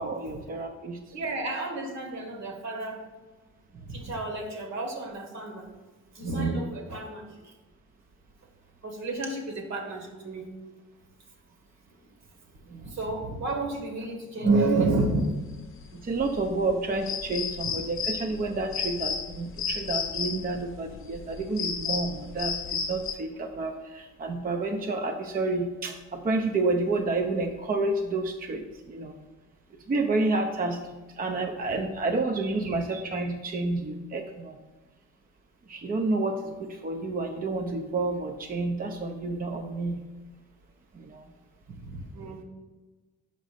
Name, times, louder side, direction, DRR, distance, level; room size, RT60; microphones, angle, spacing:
voice 1, 0.0-1.0 12.7-12.9 15.9-29.2 29.9-30.8 31.2-34.6 35.7-40.0 40.9-41.2, right 3 dB, 30° right, 4 dB, 0.6 m, -29 dB
voice 2, 1.1-3.0 3.8-5.7 6.1-7.5 8.8-10.5 12.7-15.4 41.8-42.4, right 2 dB, 65° right, 2 dB, 1.6 m, -30 dB
sound 1, 15.1-23.1, left 6 dB, 45° left, 0.7 m, -33 dB
5.4 x 5.1 x 5.1 m, 1.2 s
cardioid pair, 90°, 30 cm